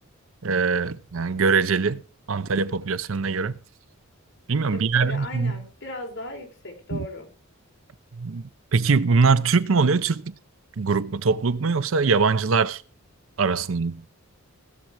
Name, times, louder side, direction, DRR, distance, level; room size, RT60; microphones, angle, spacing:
voice 1, 0.4-2.0 2.3-3.5 4.5-5.5 6.9-7.1 8.1-10.3 10.8-12.8 13.4-14.0, right 4 dB, 65° right, 0.6 m, -22 dB
voice 2, 4.7-7.3, left 2 dB, 60° left, 4.0 m, -37 dB
16.5 x 7.6 x 4.8 m
head